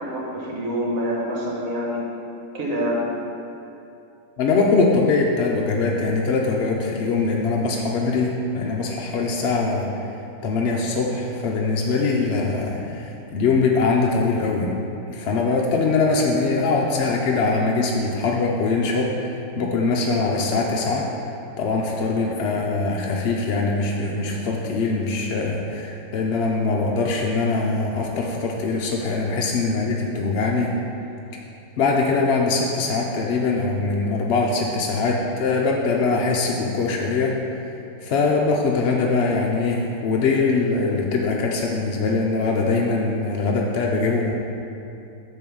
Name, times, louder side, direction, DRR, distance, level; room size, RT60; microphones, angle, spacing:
voice 1, 0.0-2.1 2.5-3.1, equal, 65° right, -3 dB, 1.6 m, -26 dB
voice 2, 4.4-9.9 10.4-14.7 15.1-21.1 21.6-30.7 31.8-37.4 38.0-44.3, left 3 dB, 60° left, -1 dB, 0.7 m, -22 dB
8.5 x 3.1 x 6.0 m, 2.8 s
omnidirectional pair, 1.6 m